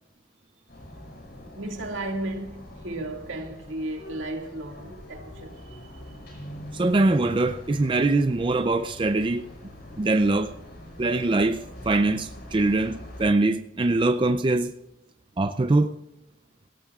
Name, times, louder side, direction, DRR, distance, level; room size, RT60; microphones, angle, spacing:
sound 1, 0.7-13.3, left 1 dB, 55° left, 5.7 m, -43 dB
voice 1, 1.5-6.1, right 1 dB, 75° right, 2.1 m, -34 dB
voice 2, 6.7-9.5 10.0-10.5 11.0-14.7 15.4-16.0, right 2 dB, 25° right, 0.4 m, -23 dB
18.5 x 16.0 x 2.4 m
head